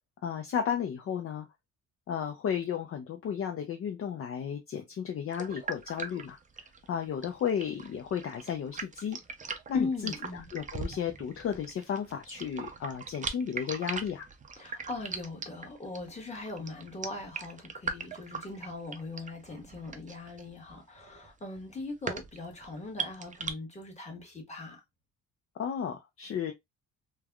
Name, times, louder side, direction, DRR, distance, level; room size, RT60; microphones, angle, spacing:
voice 1, 0.2-1.5 2.1-6.4 6.9-9.2 9.7-14.3 25.6-26.5, left 8 dB, 45° left, 0.5 m, -33 dB
sound 1, 5.3-23.5, right 5 dB, 25° right, 0.5 m, -40 dB
voice 2, 9.7-10.5 14.6-24.8, left 3 dB, 20° left, 1.3 m, -39 dB
3.2 x 2.2 x 2.3 m
cardioid pair, 90°, 30 cm